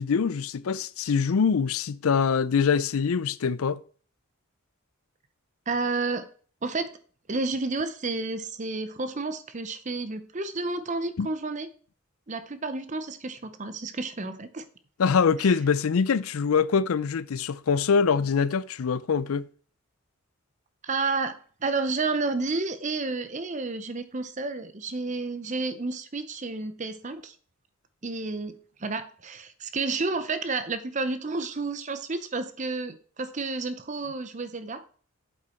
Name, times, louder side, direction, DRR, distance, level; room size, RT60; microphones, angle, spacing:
voice 1, 0.0-3.8 11.2-11.3 15.0-19.5, left 6 dB, 75° left, 0.4 m, -24 dB
voice 2, 5.7-6.3 6.6-6.9 7.3-11.7 12.3-14.7 15.4-15.5 20.8-27.3 28.0-34.8, right 3 dB, 35° right, 0.7 m, -31 dB
8.3 x 7.8 x 4.3 m
head